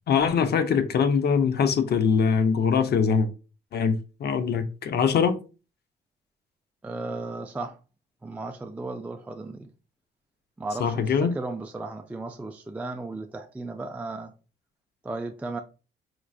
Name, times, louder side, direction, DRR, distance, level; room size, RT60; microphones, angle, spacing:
voice 1, 0.1-3.3 3.7-5.4 10.8-11.3, left 6 dB, 55° left, 0.5 m, -23 dB
voice 2, 6.8-7.8 8.2-9.7 10.6-14.3 15.0-15.6, right 2 dB, 5° right, 0.3 m, -35 dB
4.4 x 2.5 x 2.3 m
cardioid pair, 90°, 20 cm